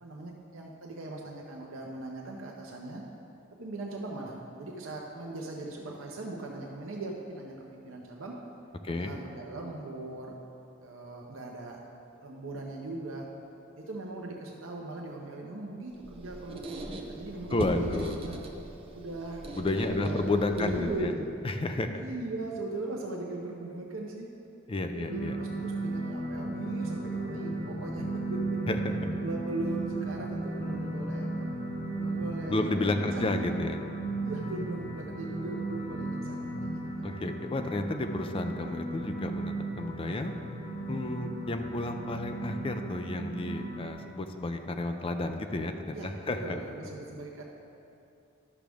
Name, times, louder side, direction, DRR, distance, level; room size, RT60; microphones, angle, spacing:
voice 1, 0.0-3.0 3.6-8.4 8.9-10.3 10.8-11.8 12.2-13.3 13.8-18.4 18.9-19.4 19.7-20.2 20.6-21.3 21.9-24.3 24.9-28.6 29.1-31.5 32.0-33.1 34.2-37.1 45.9-47.4, right 2 dB, 85° right, -1 dB, 0.8 m, -39 dB
voice 2, 8.8-9.2 17.5-18.2 19.5-21.1 21.4-22.0 24.7-25.3 28.7-29.1 32.5-33.8 37.0-40.3 40.9-46.6, left 2 dB, 30° left, 6 dB, 0.5 m, -31 dB
Squeak, 15.9-21.2, right 1 dB, 30° right, 0.7 m, -39 dB
sound 1, 25.1-43.9, right 2 dB, 55° left, 1.7 m, -35 dB
12.0 x 6.2 x 3.5 m, 2.7 s
head